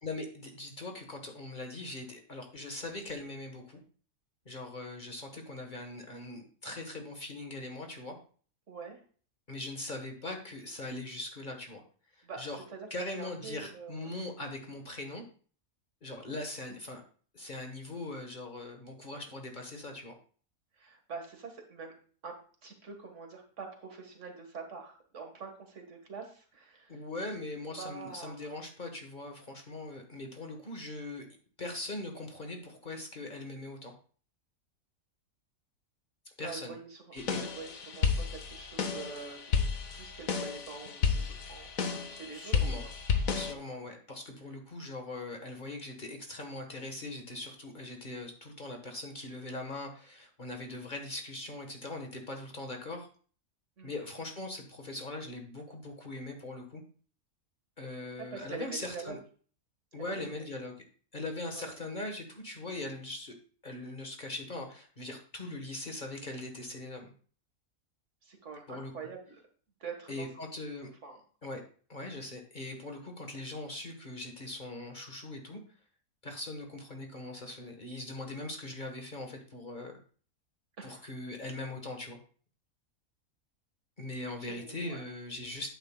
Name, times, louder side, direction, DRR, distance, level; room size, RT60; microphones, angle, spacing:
voice 1, 0.0-3.8 4.4-8.1 9.5-11.8 12.1-12.6 12.9-15.2 16.0-17.0 17.3-20.1 26.9-31.2 31.6-33.9 36.4-36.8 37.1-37.4 42.3-42.8 43.3-53.1 53.8-56.8 57.8-59.2 59.9-60.7 61.1-63.3 63.6-67.1 68.7-68.9 70.1-70.9 71.4-71.6 71.9-75.6 76.2-80.0 80.8-82.2 84.0-85.7, left 2 dB, 35° left, 3 dB, 1.4 m, -41 dB
voice 2, 8.7-9.0 12.2-12.4 12.7-14.1 20.8-21.9 22.2-22.4 22.6-27.0 27.3-27.4 27.8-28.5 36.4-37.0 37.3-39.5 39.9-41.7 42.1-42.5 42.8-42.9 53.8-53.9 58.3-59.2 60.0-60.3 61.5-61.7 68.2-69.2 69.8-70.5 71.0-71.2 80.8-81.1 84.4-85.0, right 5 dB, 60° right, 4 dB, 1.8 m, -45 dB
sound 1, 37.2-43.5, left 6 dB, 75° left, 1.4 m, -32 dB
11.0 x 9.0 x 2.2 m, 0.42 s
omnidirectional pair, 1.5 m